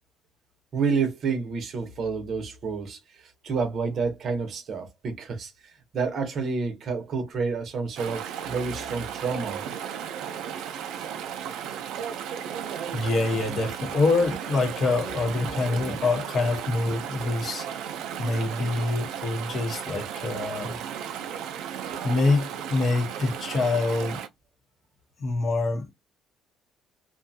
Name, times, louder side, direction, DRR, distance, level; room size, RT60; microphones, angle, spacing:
voice 1, 0.7-3.0 3.4-5.5 5.9-9.6, right 5 dB, 40° right, 0.8 m, -29 dB
Chatter / Stream, 8.0-24.3, right 8 dB, 75° right, 0.5 m, -35 dB
voice 2, 12.9-17.7 18.2-20.8 22.0-24.2 25.2-25.9, left 3 dB, 30° left, 0.9 m, -25 dB
2.6 x 2.2 x 2.7 m
cardioid pair, 155°, 0 cm